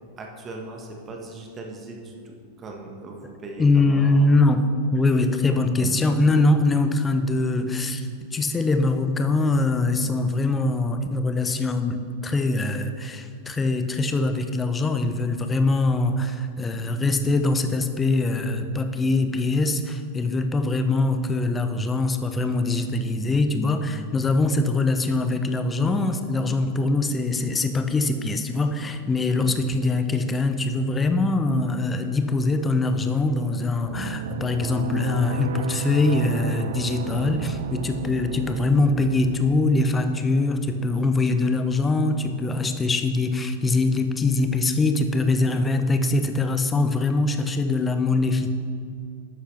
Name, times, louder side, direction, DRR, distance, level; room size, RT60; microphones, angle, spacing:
voice 1, 0.2-4.3 5.5-5.7 29.3-29.5, right 2 dB, 25° right, 1 dB, 1.3 m, -39 dB
voice 2, 3.6-4.6 4.9-48.5, left 2 dB, 15° left, 7 dB, 0.7 m, -23 dB
sound 1, 33.8-39.8, right 8 dB, 55° right, 0.4 m, -33 dB
11.5 x 8.2 x 3.3 m, 2.2 s
figure-of-eight pair, 90°, 0 cm